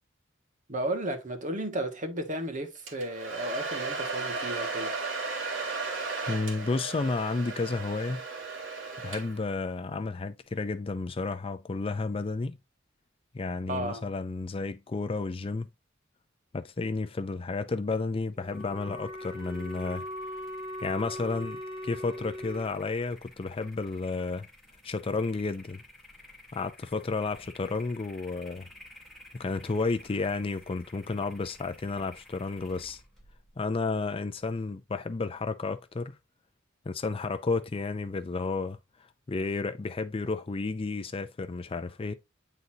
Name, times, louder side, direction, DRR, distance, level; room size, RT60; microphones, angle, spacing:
voice 1, 0.7-5.0 13.7-14.0, right 1 dB, 40° right, 1.4 m, -34 dB
Domestic sounds home sounds, 2.9-9.6, right 4 dB, 70° right, 2.2 m, -35 dB
voice 2, 6.3-8.2 9.0-12.6 13.3-15.7 16.5-20.1 20.8-21.6 21.8-24.5 24.8-25.8 26.5-28.7 29.4-33.0 33.6-36.1 36.9-38.8 39.3-42.1, left 3 dB, 30° left, 0.4 m, -32 dB
sound 1, 18.3-34.7, left 1 dB, ahead, 2.2 m, -54 dB
Wind instrument woodwind instrument, 18.4-22.7, equal, 15° right, 2.4 m, -39 dB
9.2 x 4.0 x 2.7 m
head